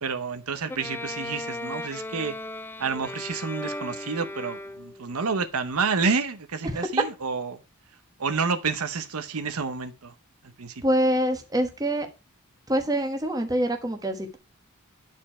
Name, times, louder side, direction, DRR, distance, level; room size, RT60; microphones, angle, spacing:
voice 1, 0.0-2.4 2.8-7.6 8.2-10.1 10.4-10.8, right 5 dB, 90° right, 0.9 m, -29 dB
Bowed string instrument, 0.7-5.1, left 1 dB, 10° left, 0.4 m, -36 dB
voice 2, 10.8-12.1 12.7-14.4, right 1 dB, 15° right, 1.1 m, -25 dB
9.5 x 4.5 x 4.3 m
head